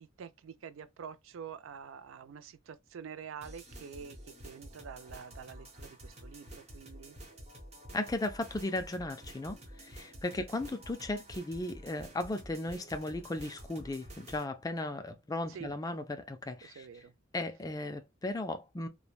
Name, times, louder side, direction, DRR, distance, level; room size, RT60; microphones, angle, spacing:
voice 1, 0.0-4.2 4.4-7.2 15.5-15.7 16.6-17.1, right 7 dB, 85° right, 0.4 m, -47 dB
sound 1, 3.4-14.4, right 1 dB, 35° right, 0.9 m, -50 dB
voice 2, 7.9-16.9 17.3-18.9, left 2 dB, 20° left, 0.4 m, -36 dB
3.1 x 2.1 x 2.3 m
head